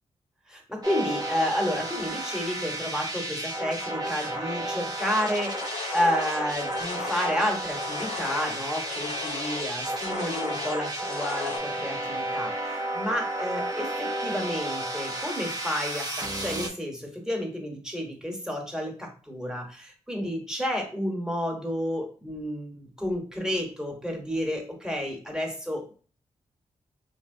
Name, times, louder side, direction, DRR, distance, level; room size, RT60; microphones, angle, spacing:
voice 1, 0.5-25.9, equal, 5° right, 1 dB, 1.1 m, -31 dB
sound 1, 0.8-16.7, right 1 dB, 35° right, 0.7 m, -32 dB
sound 2, 5.0-11.6, left 5 dB, 75° left, 0.5 m, -38 dB
2.9 x 2.6 x 2.6 m, 0.39 s
cardioid pair, 50°, 12 cm